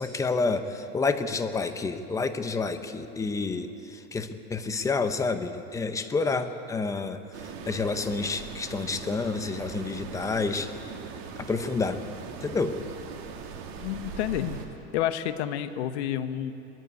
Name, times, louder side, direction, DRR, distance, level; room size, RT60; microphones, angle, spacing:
voice 1, 0.0-10.7 11.4-12.0 12.4-12.8, left 4 dB, 10° left, 9 dB, 0.6 m, -29 dB
sound 1, 7.3-14.7, right 5 dB, 65° right, 2.4 m, -40 dB
voice 2, 13.8-14.6 14.9-16.5, left 11 dB, 85° left, 10 dB, 1.2 m, -29 dB
20.0 x 14.0 x 9.6 m, 2.8 s
supercardioid pair, 165°, 33 cm